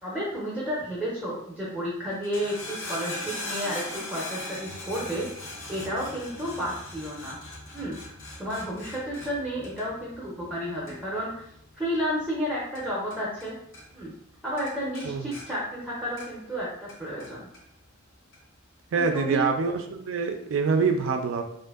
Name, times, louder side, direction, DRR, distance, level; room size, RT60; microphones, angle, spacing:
voice 1, 0.0-5.2 5.7-7.4 7.7-7.9 8.4-11.4 11.8-13.5 13.9-14.1 14.4-16.7 17.0-17.5 18.9-19.5, equal, 5° right, -7 dB, 0.5 m, -31 dB
sound 1, 2.1-13.5 13.7-14.3 14.6-16.5 16.9-17.6 18.3-18.4, left 2 dB, 65° left, 0.6 m, -40 dB
voice 2, 18.9-21.4, right 5 dB, 70° right, 6 dB, 0.3 m, -25 dB
2.6 x 2.4 x 2.3 m, 0.71 s
head